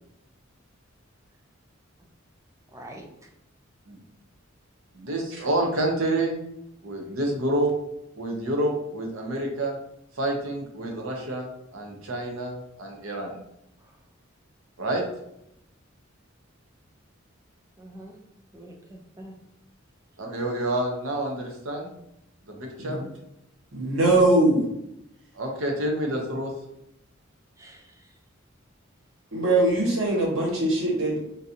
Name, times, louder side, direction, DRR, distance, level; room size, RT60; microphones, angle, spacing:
voice 1, 2.7-3.3 13.8-14.0 17.8-18.2 18.5-19.3 27.6-28.2, right 1 dB, 15° right, 2 dB, 0.5 m, -45 dB
voice 2, 4.9-6.4 6.8-7.7 8.2-9.7 10.2-13.4 14.8-15.0 20.2-22.0 22.5-23.0 25.3-26.5, right 1 dB, 85° right, 1 dB, 0.8 m, -28 dB
voice 3, 23.7-24.7 29.3-31.2, right 2 dB, 70° right, -4 dB, 1.2 m, -21 dB
3.8 x 2.6 x 2.7 m, 0.80 s
head